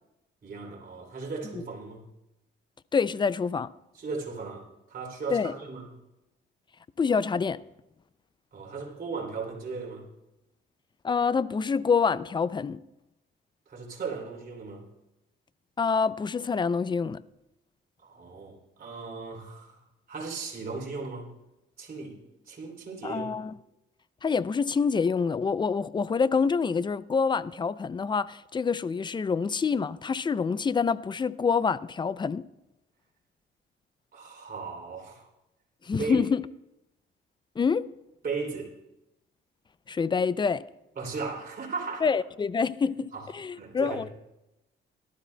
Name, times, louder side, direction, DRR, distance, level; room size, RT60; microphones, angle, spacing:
voice 1, 0.4-2.0 3.9-5.8 8.5-10.1 13.7-14.8 18.0-19.8 20.1-21.3 21.8-22.2 22.5-23.4 34.1-35.3 36.0-36.2 38.2-38.7 40.9-42.1 43.1-44.1, right 4 dB, 50° right, 3.1 m, -37 dB
voice 2, 2.9-3.7 5.3-5.5 7.0-7.6 11.0-12.8 15.8-17.2 23.0-23.6 24.2-32.4 35.8-36.4 37.6-37.9 39.9-40.6 42.0-44.1, left 5 dB, 25° left, 0.4 m, -26 dB
18.0 x 12.5 x 2.2 m
cardioid pair, 90°, 20 cm